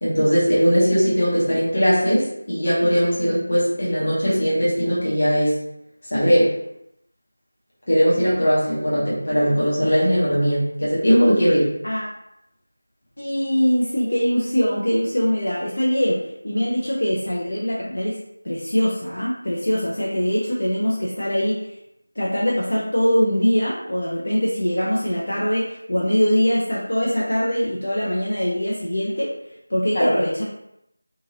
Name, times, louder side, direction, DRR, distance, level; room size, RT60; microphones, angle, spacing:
voice 1, 0.0-5.6 6.1-6.5 7.9-11.7 29.9-30.1, equal, 30° left, -9 dB, 1.0 m, -19 dB
voice 2, 13.2-16.2 16.4-18.2 18.4-21.7 22.2-29.3 29.7-30.4, equal, 55° left, -5 dB, 0.6 m, -22 dB
2.8 x 2.4 x 2.8 m, 0.81 s
figure-of-eight pair, 180°, 0 cm